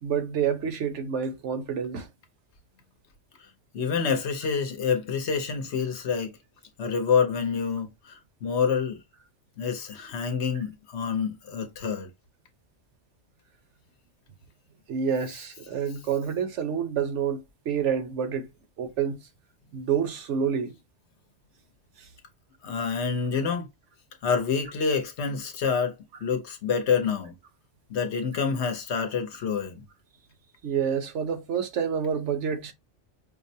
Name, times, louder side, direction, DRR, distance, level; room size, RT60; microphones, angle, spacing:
voice 1, 0.0-2.1 10.5-10.6 14.9-18.5 18.8-19.2 19.7-20.8 22.0-22.1 30.6-32.7, right 7 dB, 75° right, 1.0 m, -28 dB
voice 2, 3.7-6.4 6.8-9.0 9.6-12.1 22.6-23.7 24.2-26.0 26.2-27.3 27.9-29.8, left 6 dB, 65° left, 1.0 m, -27 dB
5.2 x 2.0 x 2.7 m
omnidirectional pair, 1.2 m